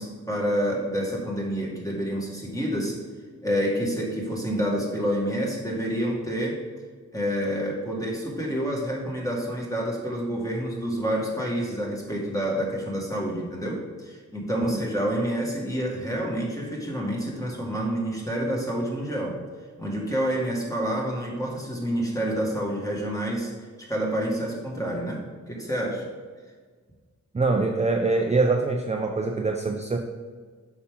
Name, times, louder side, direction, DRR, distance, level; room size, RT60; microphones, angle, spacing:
voice 1, 0.0-3.0 3.4-6.6 7.1-19.4 19.8-23.5 23.8-25.2 25.5-26.1, equal, 10° left, -2 dB, 1.9 m, -28 dB
voice 2, 27.3-30.0, right 3 dB, 25° right, 3 dB, 0.5 m, -24 dB
8.4 x 5.9 x 3.7 m, 1.5 s
wide cardioid pair, 100°, 29 cm